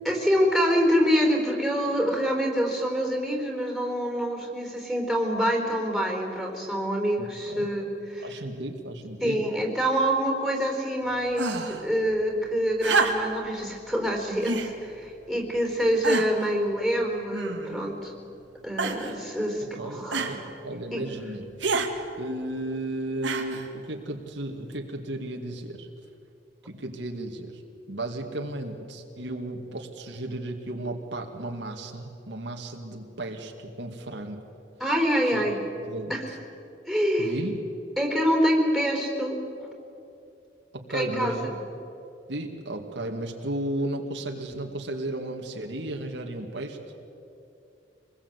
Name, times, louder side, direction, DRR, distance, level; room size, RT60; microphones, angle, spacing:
voice 1, 0.0-8.3 9.2-18.1 18.6-20.3 20.9-21.0 34.8-35.6 36.1-36.2 36.9-37.3 38.0-39.7 40.9-41.5, equal, ahead, 3 dB, 4.2 m, -26 dB
voice 2, 7.2-7.7 8.2-9.4 19.6-21.5 22.2-25.9 26.6-27.6 27.9-34.5 35.2-35.4 35.8-36.4 37.2-37.6 40.7-41.5 42.3-46.8, right 1 dB, 70° right, 3 dB, 2.1 m, -34 dB
sound 1, 11.3-11.8 12.8-13.5 14.4-14.7 15.5-15.6 16.0-16.5 17.3-17.9 18.8-19.2 20.1-20.4 21.6-21.9 23.2-23.7 24.7-24.8, right 4 dB, 85° right, 2.2 m, -28 dB
25.5 x 20.5 x 8.3 m, 2.8 s
head